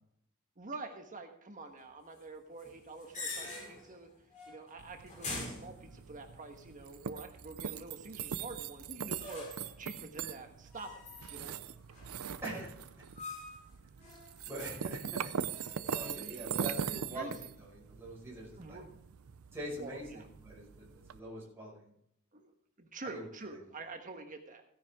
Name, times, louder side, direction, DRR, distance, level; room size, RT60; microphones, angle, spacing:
voice 1, 0.6-4.1 4.5-11.0 11.3-11.6 15.8-16.5 16.8-17.5 17.8-18.0 18.6-19.0 19.8-20.2 22.3-22.5 22.8-24.6, right 3 dB, 40° right, 5 dB, 1.3 m, -47 dB
sound 1, 2.6-4.0 4.3-4.7 5.1-6.3 9.2-9.8 10.7-11.6 11.9-12.5 13.2-13.7 14.0-16.1, left 2 dB, 35° left, 4.6 m, -45 dB
sound 2, 4.8-21.2, right 7 dB, 80° right, 0.5 m, -42 dB
voice 2, 12.4-12.7 14.5-15.3 15.9-18.8 19.5-21.9 23.0-23.3, right 1 dB, 10° right, -6 dB, 5.5 m, -44 dB
16.5 x 10.0 x 3.6 m, 0.71 s
head